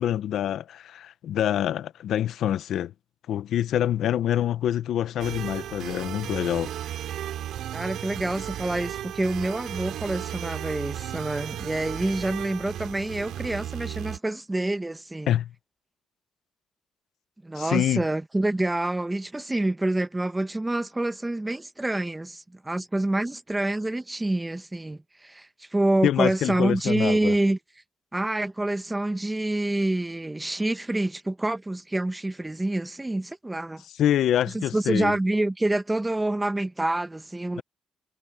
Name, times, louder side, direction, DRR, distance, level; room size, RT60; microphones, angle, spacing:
voice 1, 0.0-2.9 3.3-6.7 15.3-15.5 17.6-18.0 26.0-27.3 34.0-35.2 37.6-37.7, left 11 dB, 75° left, 0.8 m, -26 dB
sound 1, 5.2-14.2, right 11 dB, 80° right, 4.0 m, -35 dB
voice 2, 7.7-15.4 17.4-27.6 28.1-33.8 34.5-37.6, right 2 dB, 15° right, 1.0 m, -27 dB
cardioid pair, 90°, 0 cm